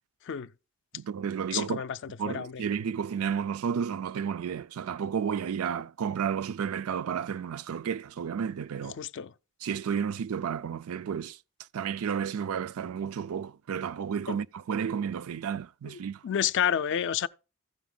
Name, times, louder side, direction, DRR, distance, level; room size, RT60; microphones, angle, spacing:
voice 1, 0.9-1.8 2.2-9.0 9.6-11.4 11.7-16.2, right 7 dB, 90° right, 0.4 m, -32 dB
voice 2, 1.5-2.0 2.2-2.6 9.0-9.3 14.3-14.4 15.8-17.3, left 8 dB, 60° left, 0.4 m, -30 dB
15.0 x 5.0 x 3.8 m
head